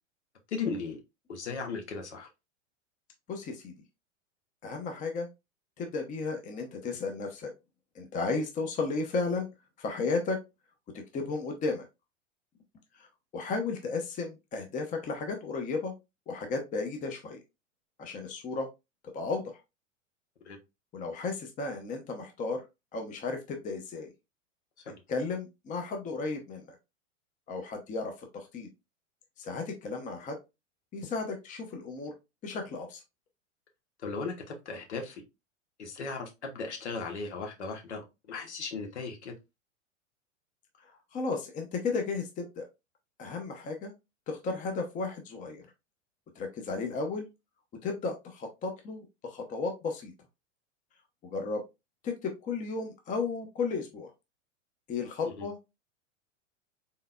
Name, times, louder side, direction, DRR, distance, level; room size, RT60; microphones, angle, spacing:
voice 1, 0.5-1.0 1.3-2.3 20.4-20.6 24.8-25.0 34.0-35.2 35.8-39.3 55.2-55.5, left 4 dB, 65° left, 3 dB, 1.3 m, -37 dB
voice 2, 3.3-3.7 4.6-5.3 5.8-7.5 7.9-9.5 9.8-10.4 11.1-11.9 13.0-13.1 13.3-15.9 16.3-17.4 18.0-18.7 19.1-19.4 20.9-22.6 22.9-24.1 25.1-26.7 27.5-28.7 29.4-30.4 30.9-32.1 32.4-33.0 41.1-42.6 43.2-43.9 44.3-45.6 46.4-47.3 47.8-50.1 51.3-51.6 52.0-54.1 54.9-55.7, left 4 dB, 20° left, 3 dB, 0.9 m, -34 dB
4.1 x 3.7 x 2.3 m, 0.24 s
figure-of-eight pair, 95°, 38 cm